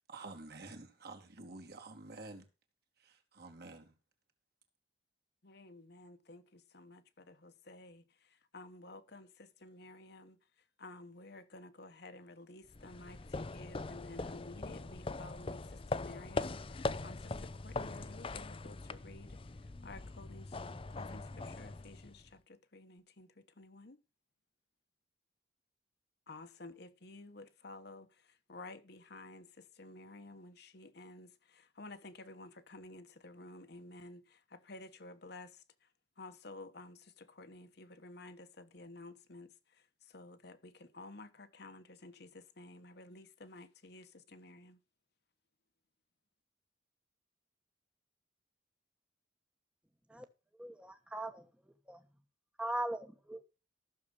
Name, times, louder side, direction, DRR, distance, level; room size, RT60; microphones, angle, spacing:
voice 1, 0.1-2.4 3.0-3.9, right 3 dB, 55° right, 2.5 m, -49 dB
voice 2, 5.4-8.0 8.5-10.4 10.8-19.4 19.8-20.5 20.9-23.3 23.6-24.0 26.3-28.1 28.5-35.6 36.2-39.5 40.1-44.8, left 2 dB, 55° left, 1.2 m, -52 dB
sound 1, 12.7-22.3, left 3 dB, 30° left, 0.6 m, -41 dB
voice 3, 50.6-51.4 51.9-52.0 52.6-53.4, right 1 dB, 5° right, 1.1 m, -39 dB
14.5 x 6.8 x 5.4 m
head